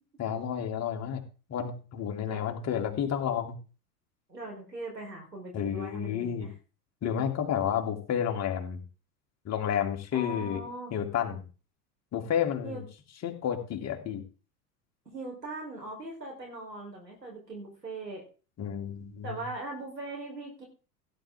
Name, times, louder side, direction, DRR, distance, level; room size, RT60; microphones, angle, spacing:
voice 1, 0.2-1.2 1.5-3.5 5.5-6.5 7.0-8.8 9.4-10.6 10.9-11.4 12.1-12.8 13.2-14.2 18.6-19.4, left 9 dB, 30° left, 3 dB, 2.9 m, -31 dB
voice 2, 4.3-6.5 10.1-10.9 12.6-12.8 15.1-18.2 19.2-20.6, right 2 dB, 90° right, 0 dB, 4.4 m, -40 dB
16.5 x 9.8 x 3.7 m, 0.35 s
figure-of-eight pair, 85°, 48 cm